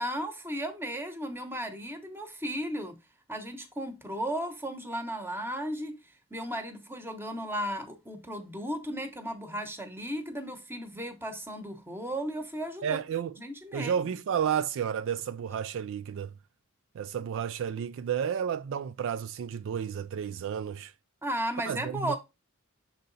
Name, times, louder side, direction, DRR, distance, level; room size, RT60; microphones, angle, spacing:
voice 1, 0.0-3.0 3.3-6.0 6.3-13.0 13.4-13.9 21.2-22.2, equal, 10° right, 1.0 m, -35 dB
voice 2, 12.8-13.3 13.7-16.3 16.9-20.9 21.7-22.1, right 8 dB, 60° right, 0.3 m, -31 dB
6.8 x 3.9 x 4.0 m
head